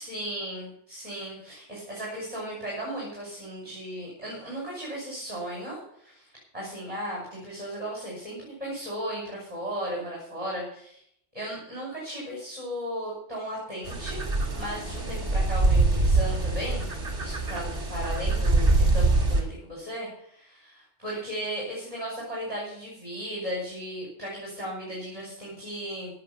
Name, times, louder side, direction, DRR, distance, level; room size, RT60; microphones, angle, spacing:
voice 1, 0.0-11.0 11.3-14.2 14.5-16.9 17.2-26.1, equal, 25° right, -4 dB, 5.7 m, -36 dB
sound 1, 13.8-19.4, right 2 dB, 45° right, 2.8 m, -24 dB
16.5 x 7.1 x 6.9 m, 0.69 s
omnidirectional pair, 1.3 m